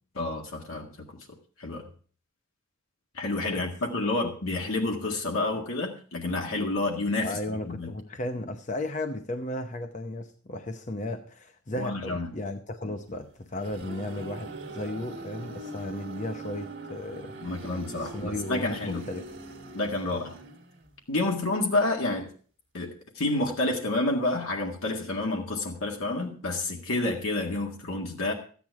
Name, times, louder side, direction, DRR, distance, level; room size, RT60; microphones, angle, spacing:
voice 1, 0.2-1.3 1.6-1.9 3.1-7.9 11.8-12.3 17.4-19.0 19.7-20.4 21.1-22.3 22.7-28.3, left 2 dB, 70° left, 1 dB, 1.9 m, -29 dB
voice 2, 7.2-17.6 18.0-19.3, left 1 dB, 35° left, 6 dB, 0.7 m, -35 dB
sound 1, 13.3-21.0, right 2 dB, 50° right, 1.6 m, -42 dB
14.0 x 9.3 x 4.7 m, 0.42 s
head